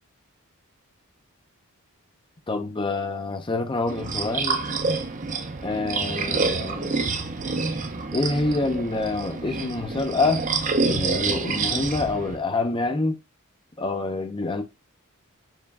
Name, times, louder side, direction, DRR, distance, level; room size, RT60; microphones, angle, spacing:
voice 1, 2.5-4.6 5.6-7.0 8.1-10.5 10.9-13.2 13.8-14.6, left 3 dB, 20° left, 0.5 m, -26 dB
sound 1, 3.9-12.4, right 4 dB, 35° right, 0.6 m, -27 dB
4.6 x 3.1 x 3.4 m
head